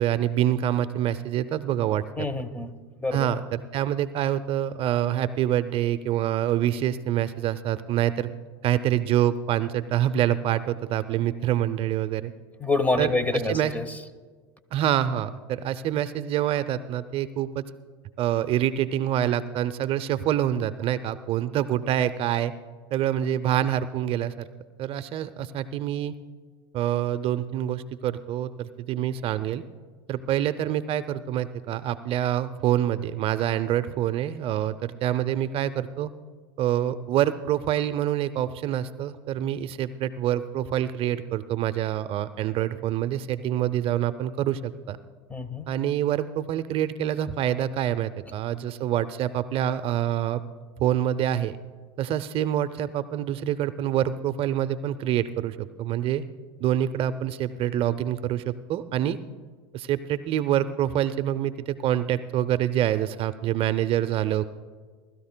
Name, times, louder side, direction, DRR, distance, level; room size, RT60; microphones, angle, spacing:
voice 1, 0.0-2.3 3.1-8.3 8.6-12.3 13.0-13.7 14.7-17.6 18.2-22.5 22.9-24.5 24.8-26.1 26.7-29.6 30.1-36.1 36.6-45.0 45.7-50.4 50.8-51.6 52.0-56.2 56.6-59.2 59.7-64.4, right 11 dB, 45° right, 12 dB, 0.5 m, -26 dB
voice 2, 2.2-2.7 3.0-3.3 12.6-13.9 45.3-45.7, left 2 dB, 10° left, 13 dB, 0.8 m, -26 dB
21.0 x 13.0 x 2.2 m, 1.5 s
hypercardioid pair, 95°, 13 cm